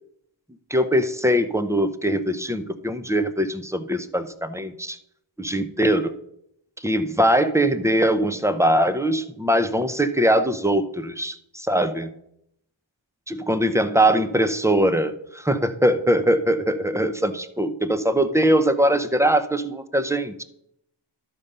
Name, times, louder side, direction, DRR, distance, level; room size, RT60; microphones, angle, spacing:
voice 1, 0.7-5.0 5.4-6.2 6.8-12.1 13.3-20.4, right 1 dB, 5° right, 10 dB, 0.7 m, -21 dB
12.0 x 5.3 x 5.5 m, 0.76 s
wide cardioid pair, 40°, 48 cm